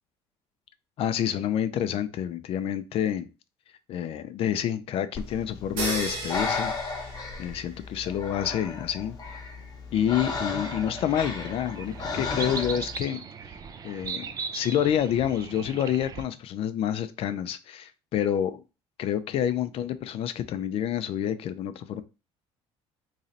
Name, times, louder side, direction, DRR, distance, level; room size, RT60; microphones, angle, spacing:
voice 1, 1.0-3.3 3.9-6.7 7.0-7.1 7.4-9.2 9.9-13.2 13.8-18.6 19.0-22.0, left 10 dB, 55° left, 0.4 m, -28 dB
Breathing, 5.1-13.0, left 4 dB, 30° left, 0.9 m, -34 dB
sound 1, 5.8-7.9, right 3 dB, 85° right, 1.1 m, -35 dB
sound 2, 9.9-16.2, right 5 dB, 30° right, 0.4 m, -39 dB
3.1 x 2.7 x 3.9 m
cardioid pair, 115°, 12 cm